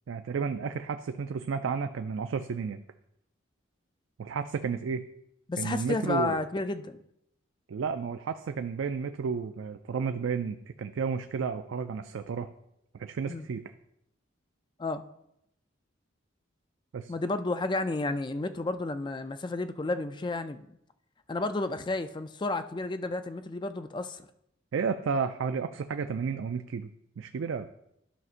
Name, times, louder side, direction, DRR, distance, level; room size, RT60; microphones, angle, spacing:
voice 1, 0.1-2.8 4.2-5.1 5.6-6.4 7.7-12.5 13.0-13.6 16.9-17.1 24.7-26.9 27.2-27.7, right 5 dB, 75° right, 8 dB, 0.4 m, -32 dB
voice 2, 5.5-7.0 13.3-13.5 14.8-15.0 17.1-20.6 21.3-24.3, left 2 dB, 25° left, 10 dB, 0.4 m, -31 dB
12.0 x 6.1 x 2.5 m, 0.78 s
head